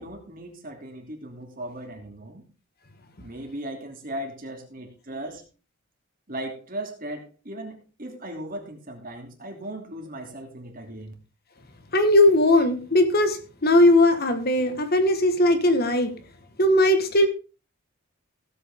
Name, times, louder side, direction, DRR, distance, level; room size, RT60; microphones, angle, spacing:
voice 1, 0.0-2.5 3.2-5.4 6.3-11.1, right 1 dB, 40° right, 2 dB, 2.8 m, -37 dB
voice 2, 11.9-16.1 16.6-17.3, left 1 dB, 45° left, 8 dB, 1.5 m, -19 dB
16.5 x 8.4 x 3.6 m, 0.34 s
head